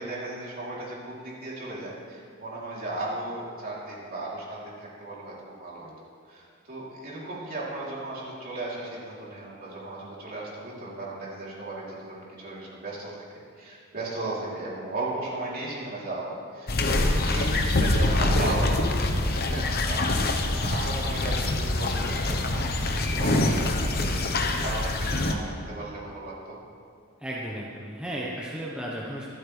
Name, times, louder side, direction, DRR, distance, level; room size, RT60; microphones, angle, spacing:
voice 1, 0.0-5.9 6.3-13.2 13.5-26.6, right 2 dB, 45° right, -6 dB, 3.3 m, -36 dB
sound 1, 16.7-25.3, left 2 dB, 45° left, 1.0 m, -25 dB
voice 2, 18.4-18.8 27.2-29.3, right 1 dB, 5° right, -5 dB, 1.0 m, -34 dB
25.0 x 8.7 x 3.4 m, 2.2 s
head